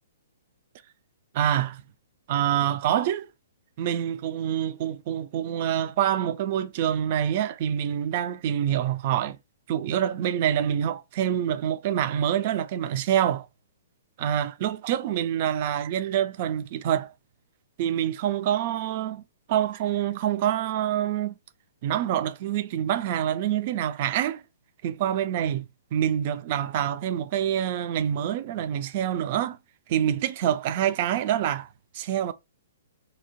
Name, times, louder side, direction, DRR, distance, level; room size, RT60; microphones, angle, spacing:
voice 1, 1.3-1.8 2.3-3.3 3.8-9.4 9.7-13.5 14.2-17.1 17.8-19.2 19.5-21.4 21.8-24.4 24.8-25.6 25.9-29.6 29.9-31.7 31.9-32.3, right 10 dB, 45° right, 0.3 m, -26 dB
2.8 x 2.1 x 2.8 m
hypercardioid pair, 130°, 0 cm